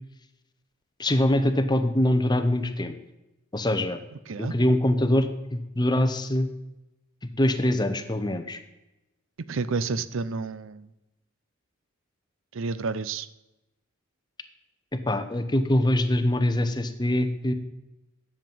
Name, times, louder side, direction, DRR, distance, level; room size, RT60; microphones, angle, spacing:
voice 1, 1.0-2.9 3.5-4.0 4.4-6.5 7.4-8.6 15.1-17.5, left 1 dB, 20° left, 9 dB, 0.8 m, -23 dB
voice 2, 9.5-10.9 12.5-13.3, right 4 dB, 60° right, 16 dB, 0.5 m, -30 dB
10.5 x 7.4 x 5.3 m, 0.97 s
head